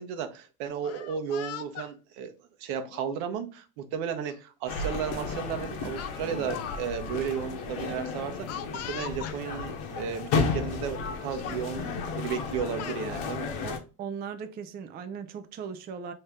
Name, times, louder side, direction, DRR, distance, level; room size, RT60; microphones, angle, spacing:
voice 1, 0.0-8.6 8.9-11.8 12.1-13.5, right 7 dB, 80° right, 0.9 m, -34 dB
Speech, 0.7-1.9 2.8-3.0 4.3-4.4 4.8-5.0 6.0-6.8 7.1-7.2 8.5-9.4 10.3-10.4 10.8-11.1 11.4-11.7 12.4-13.0, left 10 dB, 40° left, 0.4 m, -40 dB
sound 1, 4.7-13.8, left 4 dB, 90° left, 1.0 m, -33 dB
voice 2, 13.6-16.1, right 6 dB, 25° right, 0.3 m, -38 dB
3.2 x 2.9 x 3.5 m
cardioid pair, 120°, 41 cm